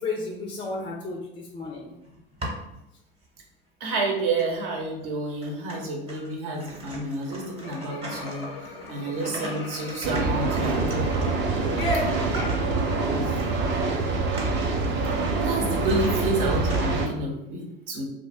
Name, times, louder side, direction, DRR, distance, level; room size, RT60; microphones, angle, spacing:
voice 1, 0.0-1.9 11.7-12.6, left 2 dB, 20° left, 1 dB, 0.3 m, -31 dB
sound 1, 2.0-2.8 3.4-3.5 4.4-4.5 5.0-5.1 5.4-13.0 13.4-13.6 13.9-16.8, right 1 dB, 20° right, 0.9 m, -39 dB
voice 2, 3.8-8.5 8.9-11.2 13.1-13.4 15.4-18.0, right 2 dB, 60° right, 0 dB, 0.9 m, -29 dB
Laughter, 7.2-12.4, left 4 dB, 85° left, 0.5 m, -44 dB
sound 2, 10.0-17.1, right 3 dB, 35° right, 0.5 m, -25 dB
2.6 x 2.0 x 3.4 m, 0.85 s
figure-of-eight pair, 70°, 30 cm